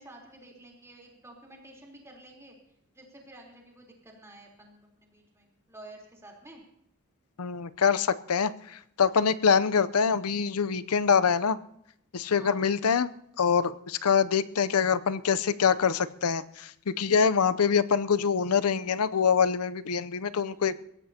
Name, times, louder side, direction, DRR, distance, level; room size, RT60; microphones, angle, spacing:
voice 1, 0.0-2.6 2.9-6.6 12.4-12.7 20.5-20.7, right 1 dB, 15° right, -1 dB, 3.6 m, -51 dB
voice 2, 7.4-11.6 12.1-13.1 13.4-20.8, left 6 dB, 75° left, 14 dB, 0.6 m, -25 dB
23.0 x 16.5 x 2.8 m, 0.77 s
head